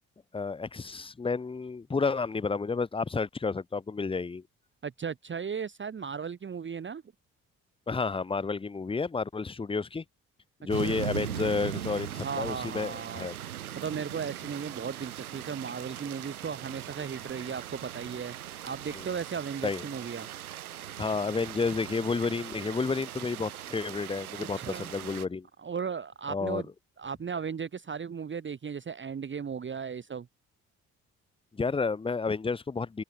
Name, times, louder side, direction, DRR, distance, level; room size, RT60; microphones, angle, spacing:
voice 1, 0.3-4.4 7.9-10.0 10.6-13.4 18.9-19.1 19.6-19.8 21.0-25.5 26.3-26.6 31.5-33.0, left 4 dB, 15° left, 0.7 m, -31 dB
voice 2, 4.8-7.0 10.8-11.2 12.2-13.4 13.7-18.3 18.6-20.3 24.3-24.9 25.6-26.7 27.0-30.3, right 6 dB, 25° right, 1.2 m, -36 dB
sound 1, 10.7-25.2, right 11 dB, 80° right, 1.5 m, -40 dB
figure-of-eight pair, 45°, 43 cm